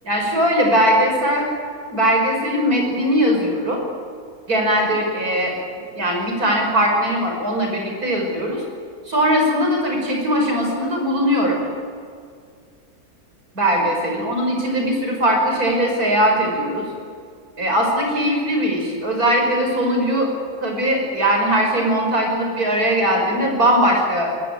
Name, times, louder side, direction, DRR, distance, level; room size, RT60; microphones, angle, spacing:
voice 1, 0.0-1.5 1.9-3.8 4.5-5.6 5.9-8.6 9.1-11.7 13.5-16.9 17.6-20.3 20.6-24.3, equal, 80° right, 1 dB, 6.1 m, -20 dB
22.5 x 22.0 x 9.2 m, 2.2 s
omnidirectional pair, 1.6 m